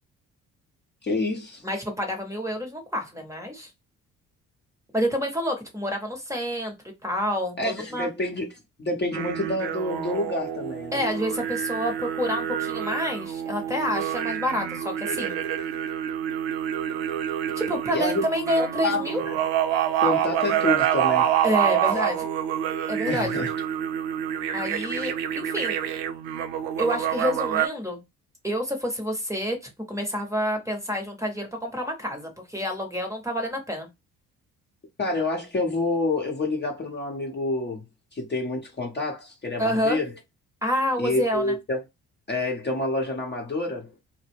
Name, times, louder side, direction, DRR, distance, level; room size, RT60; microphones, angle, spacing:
voice 1, 1.0-1.6 7.6-8.5 8.8-11.0 17.9-18.2 18.6-19.4 20.0-21.4 23.1-23.5 24.9-25.1 35.0-37.8 38.1-40.1 41.0-41.8 42.3-44.0, left 2 dB, 25° left, 0.9 m, -28 dB
voice 2, 1.6-3.7 4.9-6.7 7.0-8.1 10.9-15.4 17.5-19.2 21.4-22.3 22.9-23.3 24.5-25.8 26.8-28.0 28.4-29.6 29.9-33.9 39.6-40.0 40.6-41.5, equal, 10° right, 1.0 m, -28 dB
sound 1, 9.1-27.7, right 10 dB, 75° right, 0.5 m, -27 dB
2.2 x 2.1 x 3.4 m
hypercardioid pair, 50°, 39 cm